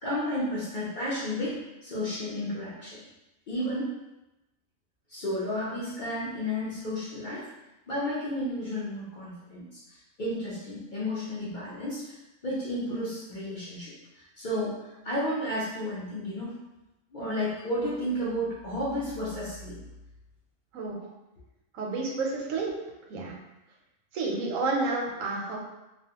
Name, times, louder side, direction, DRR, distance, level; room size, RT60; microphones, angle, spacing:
voice 1, 0.0-3.0 3.5-3.9 5.1-7.5 7.9-12.2 12.4-16.5 17.1-19.8 21.0-21.1, left 1 dB, 50° left, -8 dB, 0.6 m, -32 dB
voice 2, 21.7-22.7 23.1-23.3 24.1-25.6, right 3 dB, 85° right, -1 dB, 1.0 m, -30 dB
2.4 x 2.2 x 2.8 m, 0.97 s
omnidirectional pair, 1.4 m